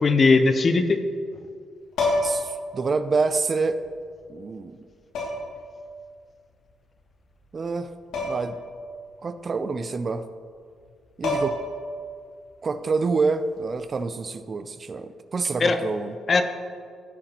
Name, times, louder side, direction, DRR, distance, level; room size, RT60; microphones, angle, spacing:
voice 1, 0.0-1.0 15.6-15.8 16.3-16.4, left 3 dB, 35° left, 9 dB, 0.6 m, -19 dB
sound 1, 1.9-2.5 3.9-4.0 5.1-5.6 8.1-8.6 8.9-9.0 10.8-10.9 11.2-11.8 13.8-14.0, left 2 dB, 85° left, 2.3 m, -26 dB
voice 2, 2.2-3.8 4.3-4.8 7.5-7.9 8.2-8.6 9.2-10.2 11.2-11.6 12.6-16.1, right 4 dB, 35° right, 11 dB, 0.4 m, -27 dB
16.0 x 5.9 x 2.9 m, 2.2 s
cardioid pair, 130°, 0 cm